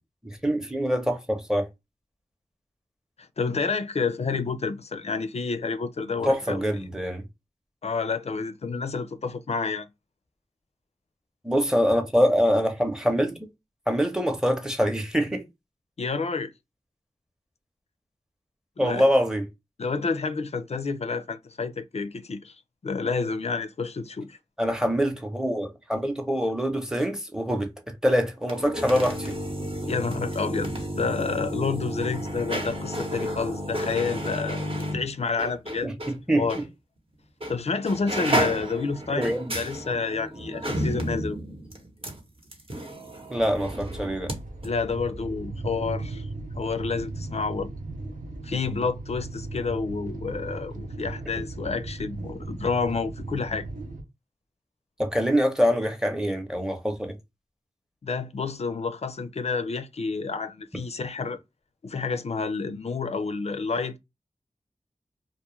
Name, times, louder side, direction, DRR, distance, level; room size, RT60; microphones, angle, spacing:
voice 1, 0.2-1.7 6.2-7.2 11.4-13.5 13.9-15.5 18.8-19.5 24.6-29.4 35.8-36.7 38.3-38.4 39.1-39.5 43.3-44.3 55.0-57.2, equal, 5° right, 0.7 m, -25 dB
voice 2, 3.2-6.6 7.8-9.9 16.0-16.5 18.8-19.1 19.8-22.6 22.8-24.4 29.9-35.9 36.3-36.6 37.5-41.4 44.6-46.3 46.6-47.7 48.4-53.7 58.0-61.4 61.8-64.0, left 4 dB, 55° left, 0.4 m, -29 dB
sound 1, 28.4-36.2 36.5-36.6 37.4-37.6 37.8-44.4 44.6-44.7, right 1 dB, 45° right, 0.8 m, -32 dB
sound 2, 43.3-54.0, right 2 dB, 80° right, 0.6 m, -37 dB
2.3 x 2.1 x 3.0 m
wide cardioid pair, 50°, 13 cm